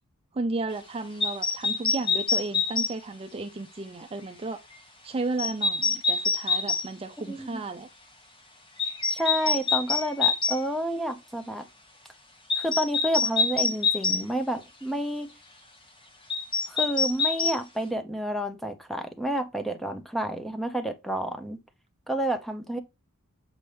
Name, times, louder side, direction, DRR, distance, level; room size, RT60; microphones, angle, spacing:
voice 1, 0.3-4.6 5.0-7.9, right 3 dB, 25° right, 0.5 m, -33 dB
sound 1, 1.2-2.9 5.4-6.9 8.8-10.6 12.5-14.2 16.3-17.6, left 4 dB, 25° left, 1.2 m, -25 dB
voice 2, 7.3-7.6 9.1-11.6 12.6-15.3 16.7-21.6 22.1-22.8, right 1 dB, ahead, 0.8 m, -30 dB
7.1 x 5.2 x 3.3 m
head